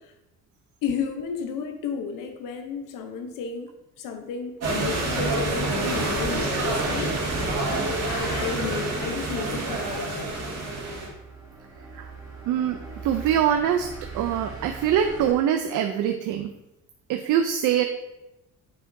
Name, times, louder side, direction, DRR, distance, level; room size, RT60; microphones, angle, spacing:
voice 1, 0.8-3.7 4.0-7.3 8.0-10.6, left 6 dB, 90° left, 6 dB, 0.8 m, -32 dB
sound 1, 4.6-11.1, right 2 dB, 50° right, 2.3 m, -27 dB
sound 2, 5.5-15.3, right 3 dB, 10° right, 1.6 m, -41 dB
voice 2, 12.5-13.9 14.1-16.5 17.1-17.9, right 9 dB, 70° right, 6 dB, 0.5 m, -24 dB
7.7 x 5.9 x 2.7 m, 0.93 s
cardioid pair, 145°, 32 cm